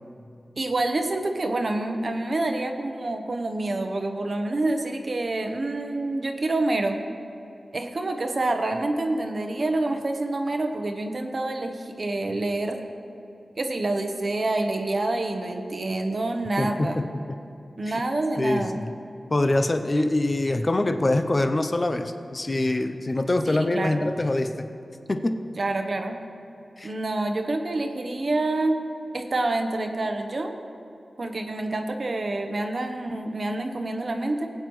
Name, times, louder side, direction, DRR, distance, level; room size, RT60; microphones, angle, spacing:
voice 1, 0.6-7.0 7.7-12.8 13.6-17.1 17.8-18.8 23.5-24.1 25.6-26.2 26.8-28.8 29.1-30.6 31.2-34.5, right 2 dB, 50° right, 5 dB, 0.8 m, -27 dB
voice 2, 16.6-17.1 17.9-18.0 18.4-18.9 19.3-24.7 25.1-25.4 26.8-26.9, left 2 dB, 30° left, 7 dB, 0.5 m, -24 dB
19.5 x 8.8 x 3.1 m, 2.7 s
wide cardioid pair, 110°, 0 cm